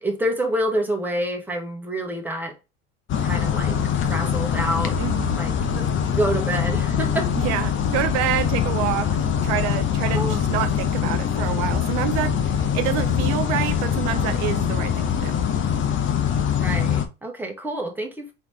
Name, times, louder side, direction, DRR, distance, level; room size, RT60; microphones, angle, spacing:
voice 1, 0.0-2.6 3.2-3.8 4.1-4.9 5.4-5.8 6.2-7.3 10.1-10.4 16.6-18.3, right 1 dB, 5° right, 1.3 m, -27 dB
sound 1, 3.1-17.1, left 8 dB, 40° left, 0.9 m, -23 dB
voice 2, 5.0-5.4 7.4-12.4 12.7-15.4, right 12 dB, 60° right, 0.7 m, -27 dB
3.9 x 3.0 x 3.3 m
supercardioid pair, 90°, 30 cm